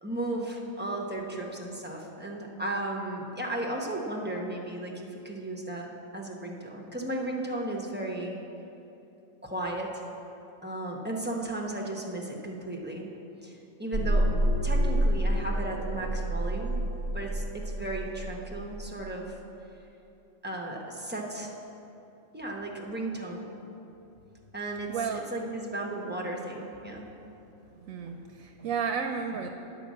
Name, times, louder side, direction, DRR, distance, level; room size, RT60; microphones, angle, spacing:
voice 1, 0.0-8.4 9.4-10.0 10.6-13.1 13.4-14.3 14.6-16.8 17.1-19.4 20.4-21.5 22.3-23.5 24.5-27.1, right 1 dB, 10° right, -1 dB, 0.8 m, -35 dB
sound 1, 13.9-18.9, right 1 dB, 20° left, 0.5 m, -28 dB
voice 2, 24.9-25.2 27.8-29.5, right 6 dB, 75° right, 5 dB, 1.0 m, -32 dB
9.8 x 5.6 x 7.3 m, 2.9 s
omnidirectional pair, 1.4 m